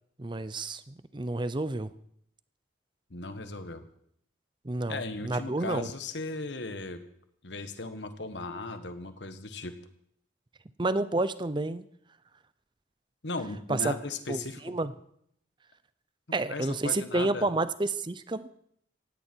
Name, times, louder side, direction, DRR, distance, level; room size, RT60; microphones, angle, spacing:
voice 1, 0.2-1.9 4.6-5.9 10.8-11.8 13.7-13.9 14.3-14.4 14.6-14.9 16.3-18.5, right 2 dB, 25° right, 14 dB, 0.6 m, -30 dB
voice 2, 3.1-3.8 4.9-7.0 7.4-9.8 13.2-14.7 16.5-17.5, left 3 dB, 70° left, 9 dB, 1.4 m, -37 dB
16.5 x 16.0 x 4.6 m, 0.70 s
head